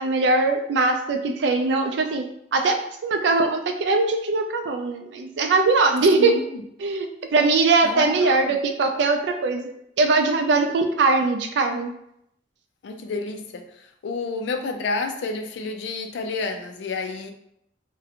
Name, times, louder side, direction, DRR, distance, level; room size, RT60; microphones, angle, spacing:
voice 1, 0.0-2.2 2.5-6.3 6.8-11.9, right 3 dB, 65° right, 5 dB, 0.3 m, -21 dB
voice 2, 6.2-6.6 7.8-8.6 12.8-13.6 14.0-17.3, left 3 dB, 70° left, 6 dB, 0.3 m, -29 dB
2.5 x 2.1 x 2.8 m, 0.76 s
head